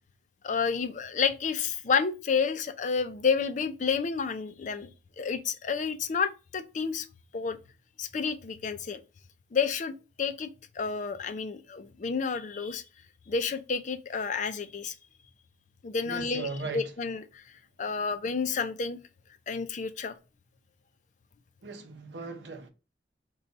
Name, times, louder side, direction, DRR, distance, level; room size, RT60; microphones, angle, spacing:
voice 1, 0.4-4.9 5.2-7.1 7.3-7.6 8.0-9.0 9.5-12.8 13.3-14.9 15.8-17.4 17.8-19.0 19.5-20.1, left 5 dB, 45° left, 0.4 m, -30 dB
voice 2, 16.0-16.9 21.6-22.7, right 4 dB, 75° right, 0.7 m, -38 dB
4.0 x 2.3 x 4.0 m
head